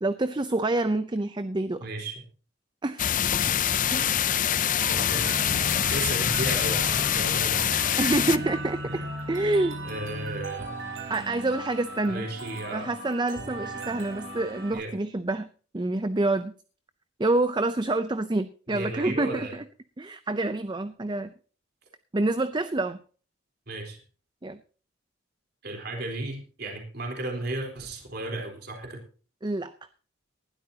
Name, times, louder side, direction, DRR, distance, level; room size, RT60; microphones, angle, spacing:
voice 1, 0.0-1.9 2.8-3.1 3.9-4.2 8.0-9.8 11.1-12.3 12.7-15.5 15.7-16.5 17.2-19.6 20.0-21.3 22.1-23.0 24.4-24.6 29.4-29.7, right 2 dB, 20° right, 12 dB, 0.5 m, -27 dB
voice 2, 1.8-2.2 4.9-5.3 5.6-8.0 8.9-9.1 9.8-10.8 12.1-12.9 14.7-14.9 18.7-19.5 23.7-24.0 25.6-29.0, right 2 dB, 50° right, 3 dB, 3.8 m, -34 dB
sound 1, 3.0-8.4, left 10 dB, 40° left, 0.5 m, -25 dB
sound 2, 4.8-14.7, right 1 dB, 65° right, 4.4 m, -37 dB
19.0 x 12.5 x 2.8 m, 0.39 s
head